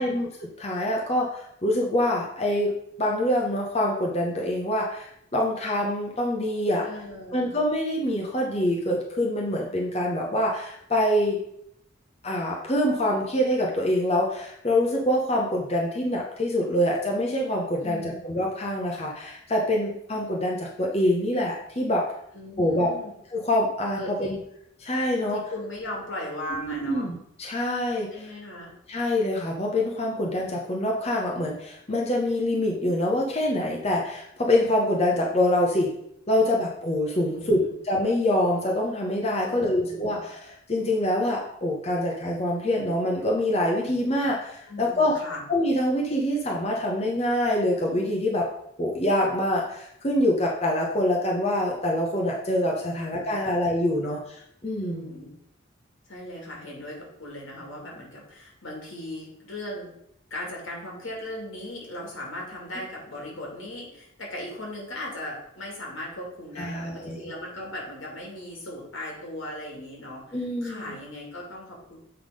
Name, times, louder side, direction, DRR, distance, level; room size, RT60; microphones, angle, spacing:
voice 1, 0.0-2.7 3.0-6.9 7.3-11.4 12.2-22.1 22.6-22.9 23.3-24.4 24.8-25.4 26.6-28.3 28.9-35.9 36.3-45.1 45.5-48.5 48.8-55.1 66.6-67.2 70.3-70.9, left 1 dB, 30° left, -1 dB, 0.8 m, -25 dB
voice 2, 6.8-7.6 17.8-18.2 22.3-23.1 23.9-24.4 25.3-27.1 28.1-28.7 37.3-37.7 39.4-40.2 44.7-45.4 52.9-53.6 54.0-54.1 54.8-55.3 56.1-59.9 60.3-72.0, left 1 dB, 80° left, -2 dB, 2.5 m, -38 dB
7.9 x 3.6 x 5.1 m, 0.75 s
head